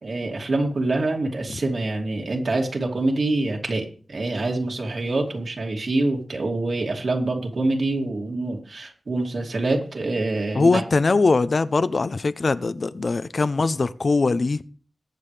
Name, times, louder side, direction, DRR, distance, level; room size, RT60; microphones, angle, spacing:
voice 1, 0.0-10.7, right 2 dB, 65° right, 2.7 m, -25 dB
voice 2, 10.5-14.6, left 3 dB, 50° left, 0.6 m, -21 dB
21.0 x 7.5 x 3.4 m
wide cardioid pair, 105°, 0 cm